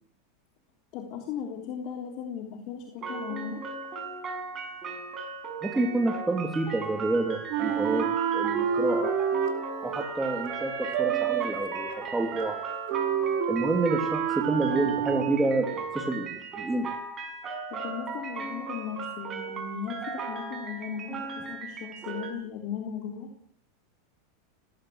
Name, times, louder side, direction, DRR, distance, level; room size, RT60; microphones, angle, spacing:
voice 1, 0.9-3.6 17.7-23.3, left 7 dB, 50° left, 3 dB, 3.7 m, -37 dB
sound 1, 3.0-22.3, right 4 dB, 30° right, 6.6 m, -37 dB
voice 2, 5.6-8.0 8.3-9.1 9.8-12.5 13.5-16.9, right 2 dB, 10° right, 3 dB, 3.0 m, -28 dB
Wind instrument woodwind instrument, 7.5-15.7, right 8 dB, 60° right, 5.0 m, -29 dB
19.5 x 17.0 x 8.1 m, 0.63 s
hypercardioid pair, 120°, 0 cm